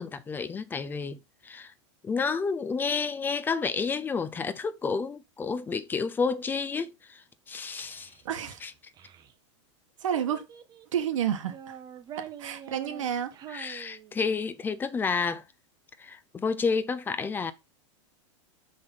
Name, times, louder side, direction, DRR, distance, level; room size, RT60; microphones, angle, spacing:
voice 1, 0.0-1.7 2.0-8.1 8.6-8.7 13.5-15.4 16.0-17.5, left 5 dB, 10° left, 0.5 m, -30 dB
Child speech kid speaking, 7.7-9.3 10.1-11.0 11.4-14.5, right 9 dB, 25° right, 0.9 m, -46 dB
voice 2, 8.3-8.6 10.0-10.4 10.9-11.8 12.4-13.3, right 9 dB, 90° right, 1.8 m, -30 dB
5.9 x 5.1 x 5.5 m
supercardioid pair, 150°, 16 cm